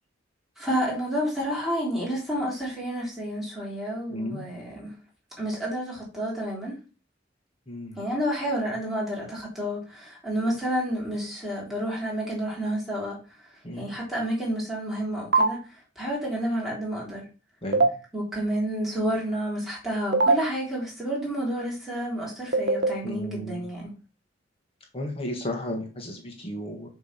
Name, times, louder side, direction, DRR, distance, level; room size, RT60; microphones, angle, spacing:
voice 1, 0.6-4.9 5.4-6.8 7.9-13.2 13.8-15.6 15.9-17.2 18.1-23.9, equal, ahead, 3.4 m, -30 dB
voice 2, 4.1-4.4 7.7-8.0 10.4-10.5 13.6-13.9 17.6-17.9 23.0-23.6 24.9-26.9, equal, 30° left, 1.7 m, -34 dB
sound 1, 15.3-15.5 17.7-17.9 20.1-20.4 22.5-22.9, right 3 dB, 60° right, 1.0 m, -19 dB
6.9 x 3.6 x 5.9 m
head